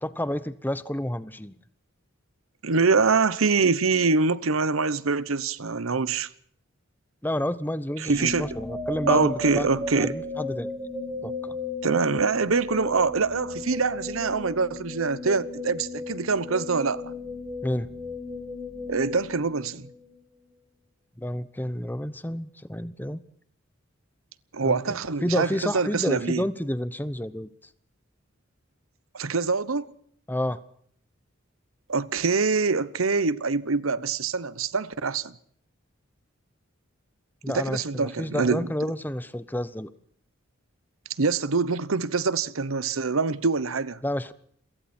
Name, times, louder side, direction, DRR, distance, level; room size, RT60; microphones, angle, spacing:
voice 1, 0.0-1.6 7.2-9.7 10.0-10.7 11.2-11.6 17.6-17.9 21.2-23.2 24.6-24.8 25.2-27.5 30.3-30.6 37.4-39.9 44.0-44.3, left 1 dB, 10° left, 0.9 m, -30 dB
voice 2, 2.6-6.3 8.0-8.6 9.1-10.2 11.8-17.1 18.9-19.9 24.5-26.4 29.1-29.9 31.9-35.3 37.5-38.7 41.2-44.0, right 4 dB, 90° right, 1.0 m, -25 dB
sound 1, 8.1-20.2, left 2 dB, 15° right, 6.4 m, -35 dB
29.0 x 23.0 x 4.4 m
head